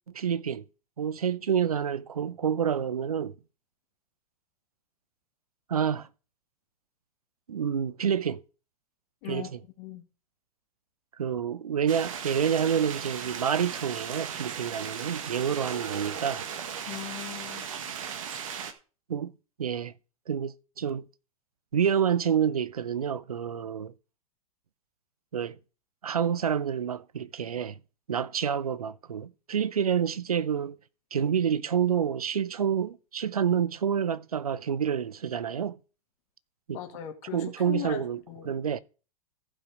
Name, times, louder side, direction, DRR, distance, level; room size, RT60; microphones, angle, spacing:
voice 1, 0.1-0.6 1.0-3.3 5.7-6.1 7.5-8.4 9.3-9.5 11.2-16.4 19.1-19.3 19.6-19.9 20.3-21.0 21.7-23.9 25.3-25.6 26.0-27.8 28.1-30.8 31.1-35.8 36.7-36.8 37.3-38.2 38.5-38.8, right 8 dB, 80° right, 0.6 m, -28 dB
sound 1, 11.9-18.7, right 7 dB, 65° right, 1.6 m, -37 dB
voice 2, 16.9-17.7 36.7-38.5, left 12 dB, 50° left, 2.1 m, -39 dB
15.0 x 5.4 x 4.8 m
figure-of-eight pair, 95°, 19 cm